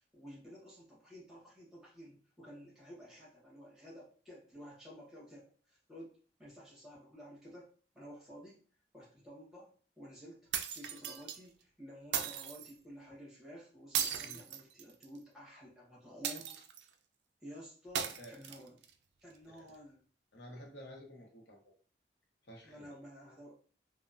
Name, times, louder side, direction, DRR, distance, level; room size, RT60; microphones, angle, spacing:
voice 1, 0.1-8.6 8.9-10.4 10.7-16.5 17.4-18.8 19.2-20.0 22.6-23.6, equal, ahead, -7 dB, 1.0 m, -52 dB
sound 1, 10.5-11.4 12.1-12.7 13.9-15.2 16.2-16.9 18.0-18.9, right 8 dB, 85° right, 0.3 m, -37 dB
voice 2, 20.3-21.6 22.4-23.0, equal, 85° left, 0 dB, 0.7 m, -51 dB
2.9 x 2.1 x 2.4 m, 0.41 s
head